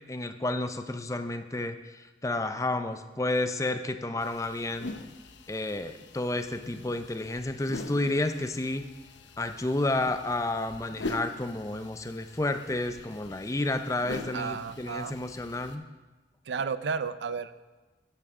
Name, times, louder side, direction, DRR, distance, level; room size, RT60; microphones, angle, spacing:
voice 1, 0.1-4.9 5.5-8.9 9.4-15.8, left 2 dB, 15° left, 9 dB, 0.5 m, -31 dB
sound 1, 4.2-15.8, left 2 dB, 80° left, 0.8 m, -43 dB
voice 2, 14.3-15.2 16.5-17.5, right 5 dB, 75° right, 14 dB, 0.5 m, -32 dB
13.0 x 10.0 x 3.7 m, 1.2 s
head